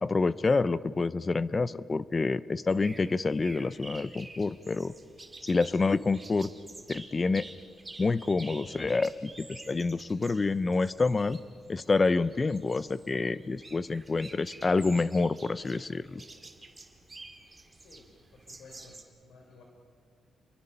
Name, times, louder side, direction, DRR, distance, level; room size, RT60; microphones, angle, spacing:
voice 1, 0.0-4.9 5.4-6.5 6.9-7.5 8.0-11.4 11.7-16.2, left 3 dB, 25° left, 16 dB, 0.5 m, -28 dB
sound 1, 2.7-19.0, right 2 dB, 15° right, 2.7 m, -50 dB
voice 2, 17.8-19.6, left 3 dB, 80° left, 0 dB, 3.7 m, -55 dB
29.5 x 23.0 x 5.6 m, 2.4 s
cardioid pair, 130°, 0 cm